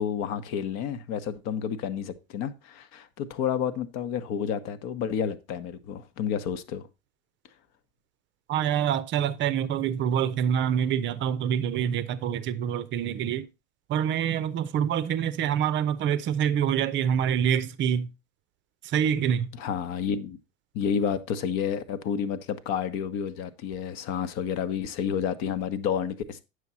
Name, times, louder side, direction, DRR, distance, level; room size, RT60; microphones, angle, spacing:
voice 1, 0.0-6.9 19.6-20.4 20.7-26.4, left 8 dB, 40° left, 1.0 m, -30 dB
voice 2, 8.5-13.5 13.9-18.1 18.8-19.5, right 9 dB, 30° right, 0.7 m, -26 dB
9.3 x 6.3 x 4.1 m
figure-of-eight pair, 85°, 41 cm